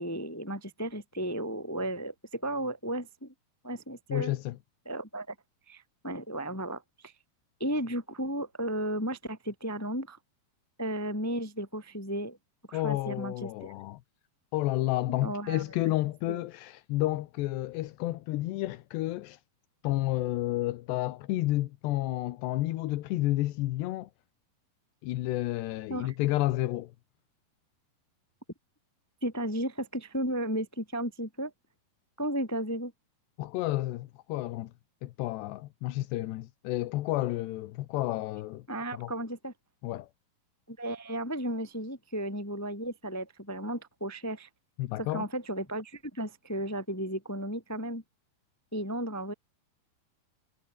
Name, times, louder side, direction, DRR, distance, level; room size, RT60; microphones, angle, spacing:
voice 1, 0.0-3.3 3.6-4.3 4.8-5.3 5.7-7.1 7.6-10.2 10.8-12.4 12.7-13.7 15.2-15.6 16.3-16.4 25.9-26.1 29.2-31.5 32.2-32.9 38.7-39.5 40.7-44.5 45.1-48.0 48.7-49.3, right 1 dB, 25° left, 0.3 m, -34 dB
voice 2, 4.1-4.6 12.7-14.0 14.5-19.4 19.8-24.1 25.0-26.9 33.4-34.7 35.0-38.6 38.9-39.1 39.8-40.1 44.8-45.3, left 16 dB, 85° left, 3.2 m, -31 dB
omnidirectional pair, 4.8 m